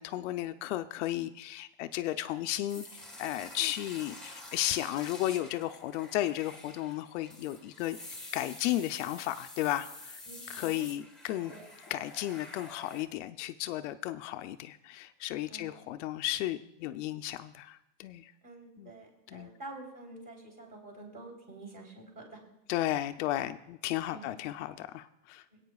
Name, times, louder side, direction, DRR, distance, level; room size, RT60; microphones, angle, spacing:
voice 1, 0.0-8.0 8.3-10.2 10.5-11.5 11.9-18.3 18.8-18.9 19.3-19.5 22.7-25.4, left 14 dB, 70° left, 9 dB, 0.6 m, -34 dB
sound 1, 2.7-13.0, left 2 dB, ahead, 1.7 m, -48 dB
voice 2, 10.2-10.9 11.5-11.6 15.5-15.7 18.4-22.4 24.1-24.4 25.5-25.6, right 2 dB, 20° right, -1 dB, 3.2 m, -48 dB
22.0 x 8.8 x 2.3 m, 0.86 s
supercardioid pair, 155°, 38 cm